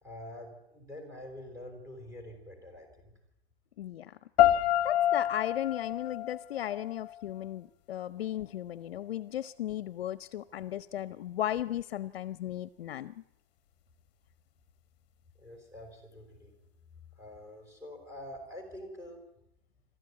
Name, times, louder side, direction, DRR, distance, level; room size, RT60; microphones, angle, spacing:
voice 1, 0.0-3.1 15.4-16.5 17.2-19.2, left 1 dB, 10° right, 2 dB, 4.6 m, -46 dB
voice 2, 3.8-4.2 4.8-13.1, left 12 dB, 65° left, 16 dB, 0.8 m, -36 dB
sound 1, 4.4-7.4, left 12 dB, 40° left, 1.1 m, -28 dB
26.5 x 13.5 x 9.6 m, 0.84 s
hypercardioid pair, 165°, 31 cm